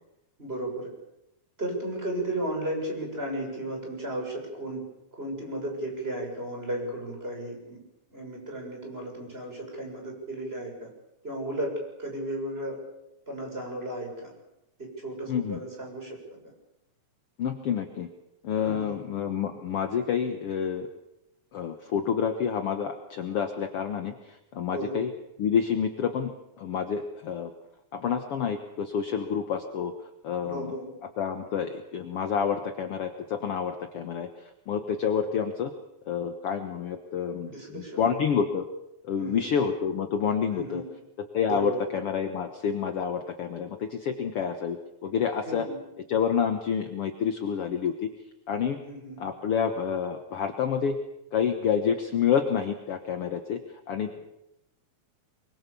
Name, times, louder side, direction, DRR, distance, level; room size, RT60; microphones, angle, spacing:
voice 1, 0.4-0.9 1.6-4.8 5.1-7.8 8.1-10.9 11.2-11.7 12.0-12.8 13.3-14.3 14.8-16.2 18.6-19.0 24.7-25.0 30.4-30.9 37.5-38.0 39.2-39.5 40.5-40.8 41.5-41.8 45.5-45.8 48.8-49.2, right 1 dB, 20° right, 1 dB, 7.1 m, -34 dB
voice 2, 15.3-15.6 17.4-18.1 18.4-20.9 21.5-24.1 24.5-25.1 25.4-26.3 26.6-27.5 27.9-29.9 30.2-30.7 31.2-34.3 34.7-35.7 36.1-38.7 39.0-40.8 41.3-45.7 46.1-48.1 48.5-48.8 49.2-51.0 51.3-53.6 53.9-54.1, left 7 dB, 55° left, 7 dB, 2.0 m, -28 dB
24.5 x 23.5 x 7.0 m, 0.87 s
omnidirectional pair, 3.4 m